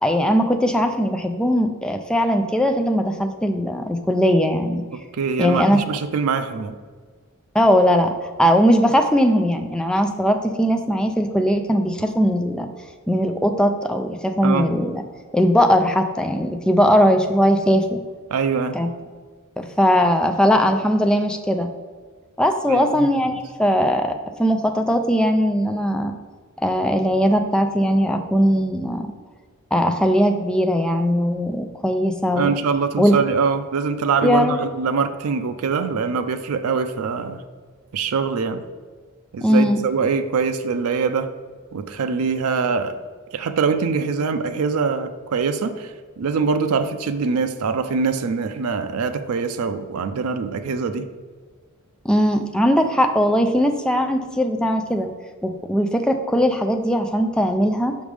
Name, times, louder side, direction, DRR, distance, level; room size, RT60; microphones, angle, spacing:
voice 1, 0.0-4.8 5.4-5.8 7.5-8.1 8.4-12.7 13.1-15.0 15.3-18.0 18.7-18.9 19.6-21.7 22.4-26.1 26.6-29.1 29.7-32.5 33.0-33.2 34.2-34.6 39.4-39.8 52.0-55.1 55.4-58.0, equal, 5° left, 5 dB, 0.4 m, -19 dB
voice 2, 4.9-6.8 14.4-14.7 18.3-18.8 22.7-23.4 32.4-37.4 37.9-38.6 39.3-41.3 41.7-43.0 43.3-51.1, right 5 dB, 90° right, 9 dB, 0.4 m, -23 dB
6.1 x 5.2 x 3.3 m, 1.5 s
head